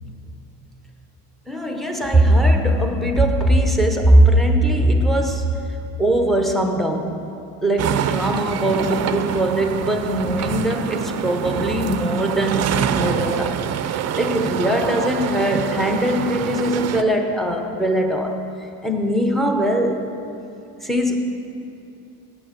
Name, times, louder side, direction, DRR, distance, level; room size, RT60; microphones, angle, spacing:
voice 1, 1.5-5.6 6.0-7.2 7.6-13.6 13.9-20.0 20.8-21.2, right 1 dB, ahead, 4 dB, 0.8 m, -20 dB
sound 1, 7.8-17.0, right 9 dB, 40° right, 0.5 m, -25 dB
8.3 x 7.6 x 8.2 m, 2.7 s
cardioid pair, 115°, 41 cm